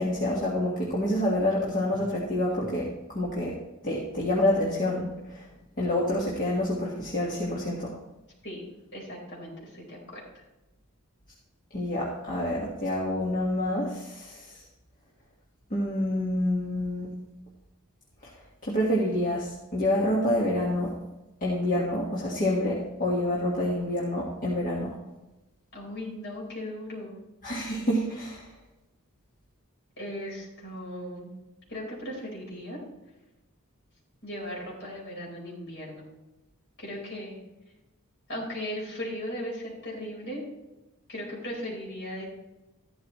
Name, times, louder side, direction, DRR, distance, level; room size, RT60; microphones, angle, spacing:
voice 1, 0.0-3.6 3.8-5.5 5.8-8.0 11.7-14.6 15.7-17.1 18.2-18.3 18.6-20.9 21.4-25.0 27.4-28.4, left 1 dB, 35° left, -4 dB, 1.7 m, -27 dB
voice 2, 8.9-10.2 25.7-27.2 30.0-31.3 31.7-32.8 34.2-36.1 36.8-37.4 38.3-40.4 41.1-42.3, equal, 55° left, -3 dB, 4.6 m, -37 dB
13.5 x 11.5 x 3.2 m, 1.0 s
head